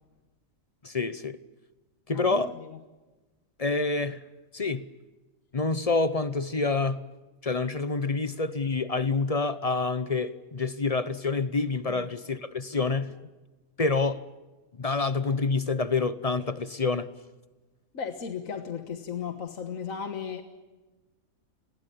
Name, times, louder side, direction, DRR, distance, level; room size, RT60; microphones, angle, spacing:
voice 1, 0.8-1.4 2.1-2.5 3.6-4.2 4.5-4.8 5.5-7.0 7.4-13.1 13.8-14.2 14.8-17.1, left 3 dB, 30° left, 0.8 m, -27 dB
voice 2, 2.1-2.8 11.9-12.1 13.2-13.3 17.9-20.4, left 7 dB, 70° left, 1.8 m, -36 dB
29.0 x 21.5 x 7.0 m
omnidirectional pair, 1.5 m